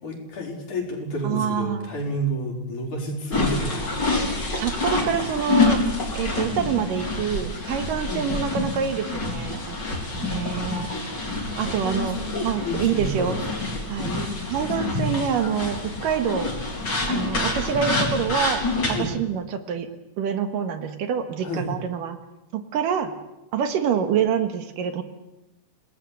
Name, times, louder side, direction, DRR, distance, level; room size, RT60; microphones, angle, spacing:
voice 1, 0.0-4.0 8.0-8.3 11.6-13.4 14.0-14.7 18.9-19.1 21.4-21.7, equal, 60° left, 1 dB, 5.6 m, -30 dB
voice 2, 1.2-1.9 4.5-5.8 6.1-9.8 10.1-10.9 11.6-12.2 12.4-13.4 13.9-14.1 14.5-16.5 17.1-18.6 19.0-19.9 20.2-22.2 22.5-23.1 23.5-25.0, right 7 dB, 75° right, 8 dB, 3.1 m, -26 dB
sound 1, 3.3-19.0, left 2 dB, 30° left, 4.4 m, -27 dB
28.5 x 19.0 x 8.2 m, 0.97 s
omnidirectional pair, 4.0 m